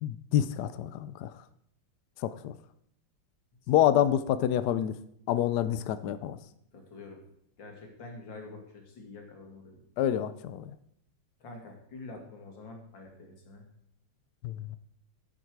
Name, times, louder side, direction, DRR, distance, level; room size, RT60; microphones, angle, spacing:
voice 1, 0.0-1.4 2.2-2.6 3.7-5.0 5.3-6.4 10.0-10.7 14.4-14.8, left 11 dB, 75° left, 13 dB, 0.9 m, -27 dB
voice 2, 6.7-7.2 7.6-9.8 11.4-13.6, left 3 dB, 60° left, 2 dB, 2.7 m, -46 dB
11.5 x 7.9 x 4.7 m, 0.71 s
omnidirectional pair, 2.3 m